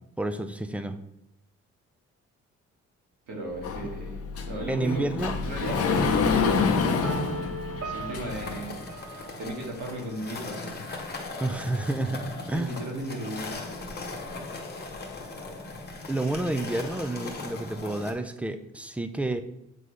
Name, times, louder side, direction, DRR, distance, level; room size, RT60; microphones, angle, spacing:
voice 1, 0.2-1.0 4.7-5.3 11.4-12.7 16.1-19.4, right 2 dB, 5° right, 9 dB, 0.5 m, -30 dB
voice 2, 3.3-5.0 5.4-7.1 7.8-8.9 9.4-10.8 12.5-13.7, right 1 dB, 75° right, -2 dB, 2.0 m, -35 dB
Sliding door, 3.6-8.6, left 5 dB, 50° left, 0.7 m, -27 dB
sound 1, 7.0-10.0, right 2 dB, 55° right, 1.1 m, -38 dB
sound 2, 8.3-18.1, left 3 dB, 35° left, 1.2 m, -39 dB
8.1 x 3.8 x 3.2 m, 0.84 s
cardioid pair, 90°, 30 cm